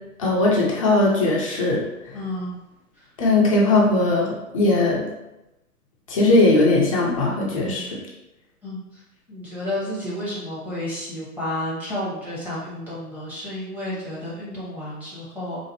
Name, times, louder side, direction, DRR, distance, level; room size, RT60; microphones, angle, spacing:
voice 1, 0.2-2.2 3.2-5.1 6.1-8.0, left 2 dB, 25° left, -4 dB, 0.4 m, -19 dB
voice 2, 2.1-2.5 3.0-3.1 7.5-7.9 8.6-9.0 9.3-15.7, left 1 dB, 5° right, -9 dB, 0.7 m, -31 dB
3.9 x 2.5 x 2.7 m, 0.94 s
hypercardioid pair, 140°, 45 cm